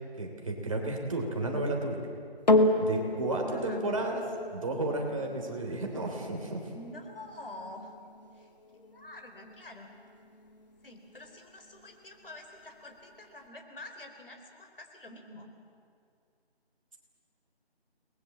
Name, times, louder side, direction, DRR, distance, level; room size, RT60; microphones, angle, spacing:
voice 1, 0.2-2.0 2.8-4.2 4.5-6.7, right 2 dB, 30° right, 1 dB, 3.1 m, -32 dB
sound 1, 2.5-11.0 11.8-11.9, left 2 dB, 40° left, 1.5 m, -32 dB
voice 2, 6.7-7.9 8.3-9.9 10.8-15.5, left 2 dB, 60° left, 4 dB, 4.3 m, -47 dB
29.5 x 20.5 x 7.6 m, 2.3 s
figure-of-eight pair, 170°, 32 cm